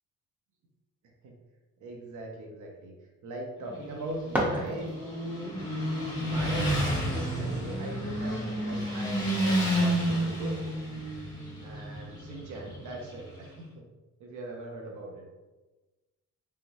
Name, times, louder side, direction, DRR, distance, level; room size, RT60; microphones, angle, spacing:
voice 1, 1.8-2.9 3.2-4.9 6.2-10.6 11.6-13.9 14.2-15.3, right 2 dB, 75° right, 1 dB, 0.8 m, -40 dB
Motorcycle, 3.7-13.5, equal, 15° left, 1.1 m, -31 dB
sound 1, 3.8-5.3, equal, 5° right, 0.8 m, -32 dB
3.5 x 3.0 x 2.6 m, 1.2 s
cardioid pair, 90°, 30 cm